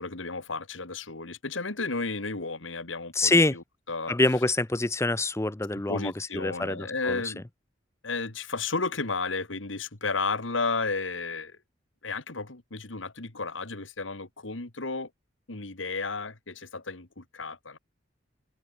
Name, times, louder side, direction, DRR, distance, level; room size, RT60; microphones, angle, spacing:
voice 1, 0.0-4.1 5.7-7.4 8.0-11.6 12.0-15.1 15.5-17.8, left 4 dB, 85° left, 2.2 m, -33 dB
voice 2, 3.2-3.6 4.1-7.3, left 2 dB, 15° left, 0.6 m, -25 dB
open air
head